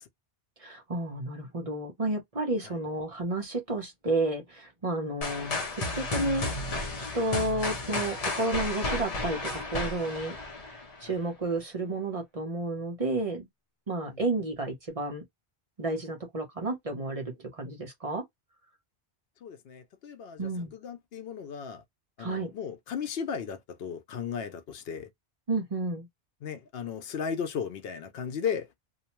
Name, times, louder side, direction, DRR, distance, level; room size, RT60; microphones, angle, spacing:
voice 1, 0.6-10.3 10.6-10.7 11.0-13.5 13.9-15.2 15.8-18.2 20.4-20.7 22.2-22.5 25.5-26.1, right 2 dB, 40° right, 0.8 m, -31 dB
sound 1, 5.2-11.1, left 2 dB, 45° left, 0.6 m, -33 dB
voice 2, 19.4-21.8 22.2-25.1 26.4-28.7, left 7 dB, 80° left, 0.8 m, -36 dB
2.7 x 2.1 x 2.9 m
omnidirectional pair, 1.0 m